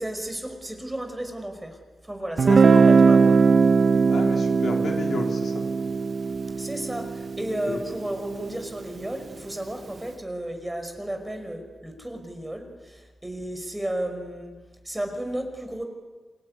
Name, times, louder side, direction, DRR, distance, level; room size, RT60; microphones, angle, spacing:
voice 1, 0.0-3.4 6.6-14.6 14.8-15.8, right 1 dB, 10° right, 5 dB, 5.4 m, -33 dB
voice 2, 2.4-2.9 4.1-5.6 7.6-7.8, left 3 dB, 65° left, 2 dB, 3.3 m, -32 dB
Guitar, 2.4-8.1, right 5 dB, 50° right, 0.8 m, -20 dB
27.5 x 20.5 x 9.8 m, 1.3 s
wide cardioid pair, 100°, 0 cm